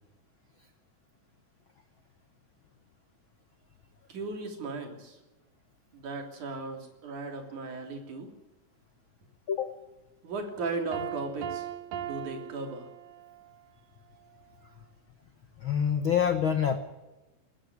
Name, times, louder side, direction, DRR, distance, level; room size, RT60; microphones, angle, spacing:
voice 1, 4.1-5.2 5.9-8.3 10.2-11.7 12.0-12.9, right 3 dB, 60° right, 3 dB, 4.6 m, -36 dB
voice 2, 9.5-9.8 15.6-16.8, left 8 dB, 75° left, 7 dB, 1.1 m, -26 dB
Piano, 10.9-13.5, right 11 dB, 75° right, 3.0 m, -38 dB
20.5 x 14.0 x 9.7 m, 1.1 s
omnidirectional pair, 4.0 m